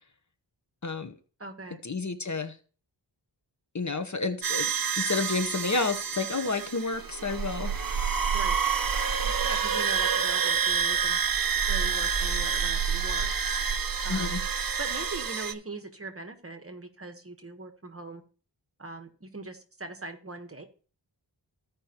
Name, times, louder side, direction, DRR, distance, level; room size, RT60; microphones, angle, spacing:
voice 1, 0.8-1.1 1.8-2.6 3.7-4.7 5.0-7.7 9.2-9.3 14.1-14.4, left 4 dB, 40° left, 8 dB, 0.9 m, -30 dB
voice 2, 1.4-1.8 8.3-8.6 9.4-11.2 11.7-13.3 14.0-14.4 14.8-18.2 18.8-20.6, right 3 dB, 30° right, 7 dB, 1.2 m, -40 dB
sound 1, 4.4-15.5, right 6 dB, 50° right, 0.8 m, -28 dB
15.5 x 5.2 x 2.9 m, 0.40 s
wide cardioid pair, 65°, 44 cm